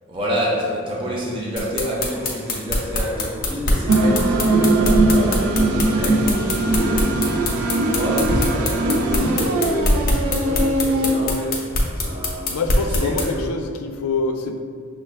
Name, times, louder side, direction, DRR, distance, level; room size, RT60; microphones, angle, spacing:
voice 1, 0.1-7.1 7.6-11.7 11.9-12.5 12.8-13.5, equal, 25° right, -5 dB, 0.6 m, -28 dB
sound 1, 1.6-13.3, left 2 dB, 40° left, 0.7 m, -22 dB
sound 2, 3.9-11.2, right 2 dB, 75° right, 0.4 m, -20 dB
sound 3, 4.9-5.6 8.2-8.6 9.5-10.7, equal, 50° right, 1.5 m, -26 dB
voice 2, 12.5-14.6, left 3 dB, 90° left, 6 dB, 0.4 m, -25 dB
6.1 x 2.2 x 3.3 m, 2.1 s
head